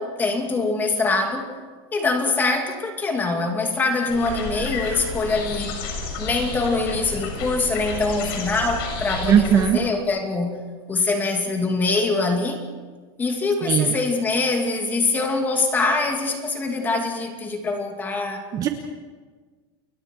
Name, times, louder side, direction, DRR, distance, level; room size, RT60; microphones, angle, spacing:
voice 1, 0.0-1.5 1.9-5.8 6.2-10.6 10.9-12.6 13.2-18.4, left 3 dB, 15° left, 4 dB, 2.4 m, -24 dB
sound 1, 4.1-9.7, left 3 dB, 65° left, 6.7 m, -31 dB
voice 2, 9.3-9.8 13.7-13.9 18.5-18.7, right 9 dB, 25° right, 6 dB, 1.1 m, -18 dB
29.0 x 21.5 x 4.6 m, 1.4 s
supercardioid pair, 170°, 14 cm